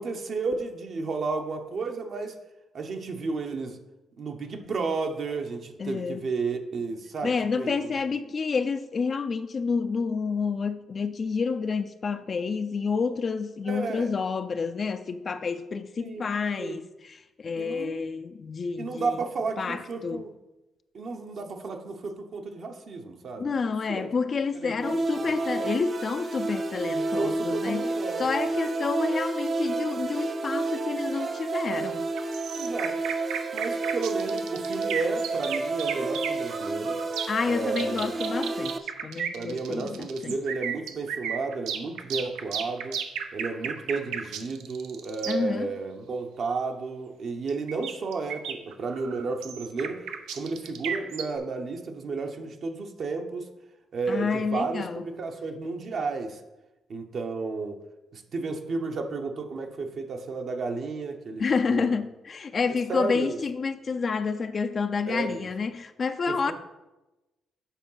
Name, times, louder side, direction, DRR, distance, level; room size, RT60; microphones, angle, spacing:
voice 1, 0.0-2.3 2.7-3.8 4.2-7.9 13.6-14.1 16.0-16.3 16.6-16.8 17.6-18.0 18.8-20.3 20.9-23.5 23.9-24.1 24.5-25.3 27.2-28.3 32.6-33.0 33.5-37.0 37.4-38.1 39.3-43.0 43.3-53.5 53.9-56.4 56.9-57.8 58.1-61.4 61.7-61.9 62.9-63.4 65.1-65.5 66.3-66.5, right 4 dB, 55° right, 0.9 m, -32 dB
voice 2, 5.8-6.2 7.2-19.2 19.6-20.2 23.4-27.9 28.2-32.1 37.3-40.4 45.3-45.7 54.1-55.0 61.4-66.5, left 5 dB, 40° left, 0.4 m, -29 dB
sound 1, 24.8-38.8, right 3 dB, 40° right, 0.6 m, -30 dB
sound 2, 32.2-45.4 47.5-51.4, right 8 dB, 90° right, 0.6 m, -34 dB
7.2 x 4.6 x 5.6 m
cardioid pair, 90°, 0 cm